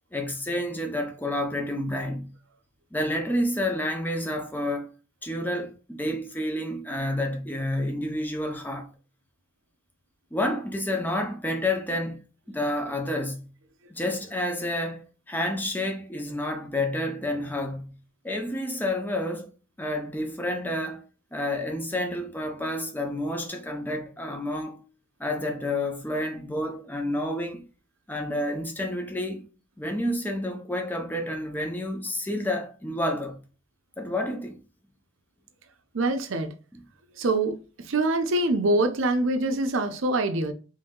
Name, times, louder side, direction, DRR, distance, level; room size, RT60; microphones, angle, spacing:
voice 1, 0.1-2.3 2.9-4.9 5.2-8.9 10.3-12.2 12.5-13.5 13.9-17.9 18.2-19.5 19.8-21.0 21.3-24.8 25.2-27.6 28.1-29.5 29.8-33.4 34.0-34.6, left 1 dB, 10° left, 0.5 m, -29 dB
voice 2, 35.9-36.5 37.2-40.5, right 2 dB, 70° right, 0.6 m, -25 dB
3.2 x 2.7 x 3.6 m
head